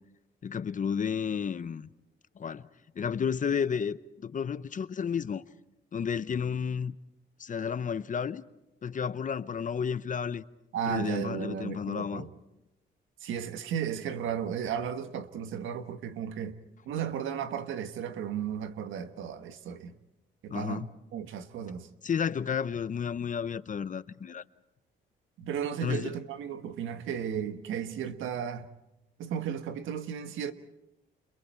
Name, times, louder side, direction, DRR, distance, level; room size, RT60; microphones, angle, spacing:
voice 1, 0.4-1.9 2.4-2.6 3.0-5.4 5.9-6.9 7.4-8.4 8.8-10.4 10.9-12.2 20.5-20.9 22.0-24.4 25.8-26.1, left 7 dB, 40° left, 0.9 m, -32 dB
voice 2, 10.7-12.3 13.2-16.6 16.8-19.9 20.4-20.9 21.1-21.9 25.4-28.7 29.2-30.5, right 8 dB, 80° right, 1.5 m, -34 dB
29.5 x 28.5 x 4.5 m
cardioid pair, 90°, 20 cm